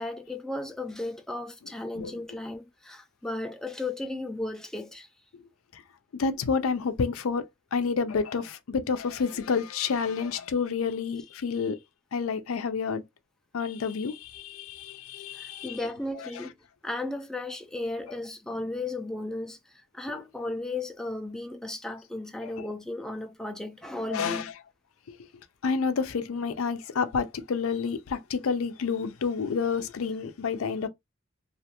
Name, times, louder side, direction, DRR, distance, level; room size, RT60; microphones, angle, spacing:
voice 1, 0.0-5.1 15.4-16.5 16.8-24.5, left 2 dB, 5° left, 0.3 m, -35 dB
voice 2, 6.1-11.8 12.1-13.0 13.5-15.8 16.2-16.5 22.4-22.7 24.1-24.5 25.1-25.2 25.6-30.9, left 5 dB, 85° left, 0.5 m, -29 dB
2.4 x 2.2 x 2.8 m
head